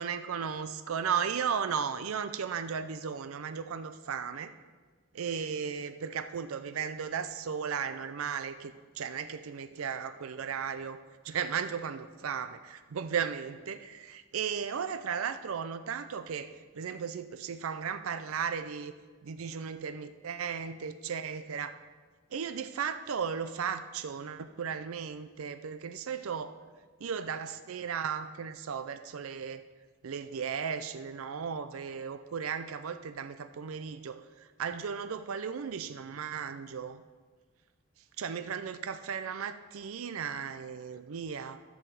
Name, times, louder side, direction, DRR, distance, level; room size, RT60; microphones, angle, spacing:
voice 1, 0.0-4.5 5.1-11.0 11.2-18.9 19.2-21.8 22.3-26.6 27.0-29.6 30.0-37.0 38.2-41.6, right 7 dB, 90° right, 11 dB, 0.5 m, -35 dB
11.0 x 4.9 x 7.4 m, 1.4 s
head